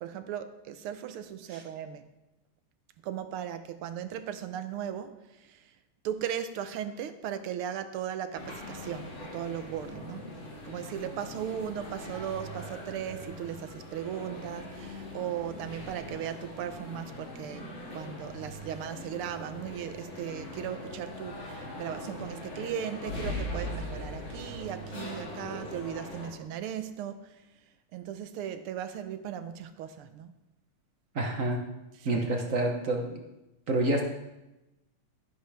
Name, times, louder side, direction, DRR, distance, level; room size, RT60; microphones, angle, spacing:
voice 1, 0.0-2.0 3.0-5.7 6.0-10.2 10.7-27.4 27.9-30.3 32.0-32.2, right 9 dB, 80° right, 10 dB, 1.6 m, -37 dB
sound 1, 8.3-26.3, left 1 dB, 60° left, 3.0 m, -41 dB
voice 2, 31.1-31.6 32.0-33.2 33.7-34.0, right 2 dB, 50° right, 2 dB, 1.1 m, -28 dB
12.5 x 10.5 x 3.4 m, 0.99 s
omnidirectional pair, 2.4 m